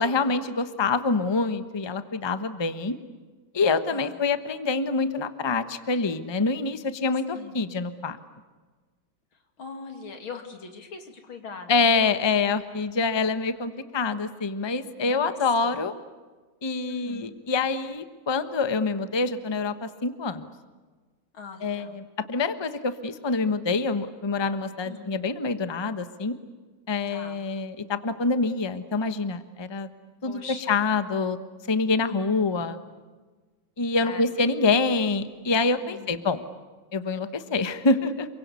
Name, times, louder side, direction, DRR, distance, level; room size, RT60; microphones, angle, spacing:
voice 1, 0.0-2.9 3.5-8.2 11.7-15.9 16.6-20.5 21.6-26.3 26.9-29.9 30.2-31.4 31.7-32.8 33.8-36.4 36.9-38.3, left 4 dB, 20° left, 10 dB, 0.8 m, -26 dB
voice 2, 7.3-7.7 9.6-11.9 15.0-15.8 16.9-17.4 21.3-22.0 24.8-25.1 27.1-27.4 30.2-30.8 32.0-32.4 34.0-34.2 35.8-36.3, left 5 dB, 90° left, 5 dB, 3.3 m, -41 dB
28.5 x 23.5 x 8.4 m, 1.3 s
omnidirectional pair, 2.2 m